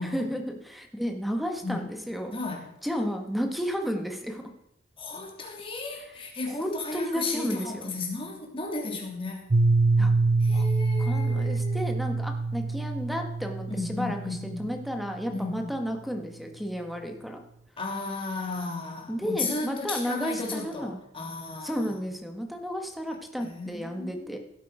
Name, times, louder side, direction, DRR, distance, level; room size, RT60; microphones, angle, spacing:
voice 1, 0.0-2.3 2.8-4.4 5.9-6.2 6.5-7.9 10.0-10.1 10.5-10.7 11.0-17.4 19.1-21.0 21.6-24.4, equal, ahead, 5 dB, 1.3 m, -32 dB
voice 2, 2.3-2.7 5.0-9.5 10.4-11.8 13.7-14.6 15.3-15.7 17.8-21.9 23.4-24.4, left 3 dB, 25° left, 0 dB, 2.8 m, -34 dB
Piano, 9.5-15.1, right 3 dB, 35° right, 0.6 m, -25 dB
16.0 x 8.6 x 4.9 m, 0.80 s
head